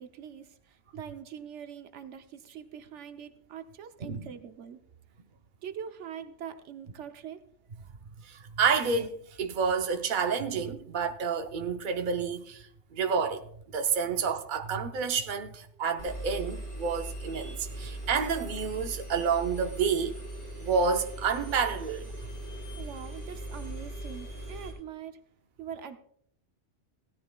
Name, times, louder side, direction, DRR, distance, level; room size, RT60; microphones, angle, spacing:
voice 1, 0.0-4.8 5.6-7.4 22.8-25.2 25.6-26.0, right 8 dB, 85° right, 1.1 m, -43 dB
voice 2, 8.3-12.6 12.9-13.4 13.7-20.2 20.6-22.1, right 5 dB, 50° right, 0.9 m, -29 dB
Engine, 16.0-24.7, right 1 dB, 75° left, 5.2 m, -40 dB
17.5 x 13.5 x 2.3 m
omnidirectional pair, 1.2 m